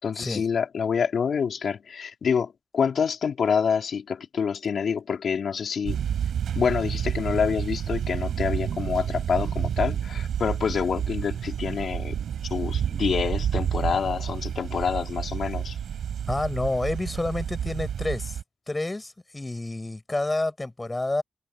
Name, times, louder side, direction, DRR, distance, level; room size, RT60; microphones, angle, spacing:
voice 1, 0.0-6.0 6.6-12.2 12.5-15.8, left 6 dB, 70° left, 3.5 m, -27 dB
sound 1, 5.8-18.4, right 8 dB, 85° right, 4.4 m, -29 dB
voice 2, 16.3-18.4 18.7-21.2, left 2 dB, 20° left, 6.0 m, -29 dB
cardioid pair, 75°, 0 cm